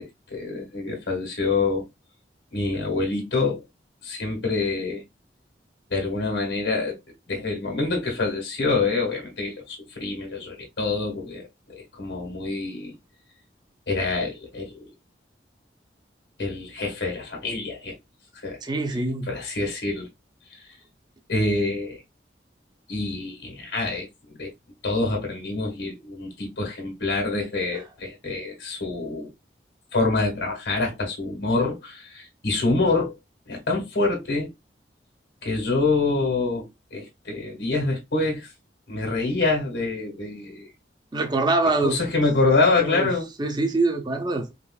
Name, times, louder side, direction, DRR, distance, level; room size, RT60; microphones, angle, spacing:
voice 1, 0.0-1.9 2.5-3.6 4.0-5.0 5.9-7.0 7.3-12.9 13.9-14.9 16.4-17.9 18.4-18.6 19.3-20.1 20.6-20.7 21.3-22.0 22.9-24.1 24.4-24.5 24.8-29.3 29.9-33.2 33.5-34.5 35.4-38.5 38.9-40.7 41.8-43.3, left 3 dB, 90° left, 1.6 m, -26 dB
voice 2, 18.6-19.3 41.1-42.0 42.8-43.1 43.4-44.5, right 2 dB, 25° right, 0.5 m, -24 dB
4.8 x 2.5 x 2.3 m
head